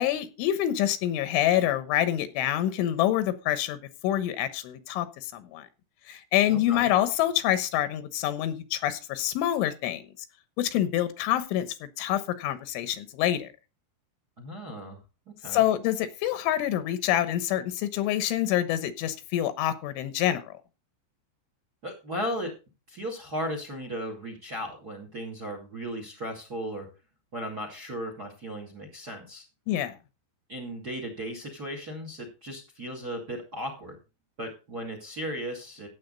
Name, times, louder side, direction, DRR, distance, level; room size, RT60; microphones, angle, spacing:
voice 1, 0.0-3.8 4.0-5.7 6.1-10.0 10.6-11.7 12.0-13.5 15.5-20.6 29.7-30.0, left 12 dB, 85° left, 12 dB, 3.5 m, -26 dB
voice 2, 6.5-6.9 14.4-15.0 15.4-15.6 21.8-22.5 22.9-26.9 27.3-29.4 30.5-34.0 34.4-35.9, equal, 30° right, 4 dB, 2.0 m, -36 dB
14.5 x 8.7 x 4.0 m, 0.29 s
omnidirectional pair, 5.5 m